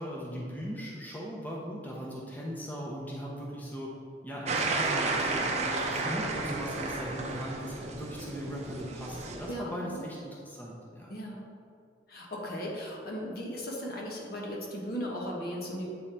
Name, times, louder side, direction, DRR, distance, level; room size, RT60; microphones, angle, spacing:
voice 1, 0.0-3.9 4.2-11.1, equal, 10° left, -4 dB, 0.8 m, -39 dB
sound 1, 4.5-9.5, right 3 dB, 40° right, 0.6 m, -32 dB
voice 2, 9.5-10.0 11.1-11.5 12.1-15.9, equal, 55° left, -2 dB, 1.2 m, -37 dB
8.2 x 3.8 x 4.3 m, 2.3 s
head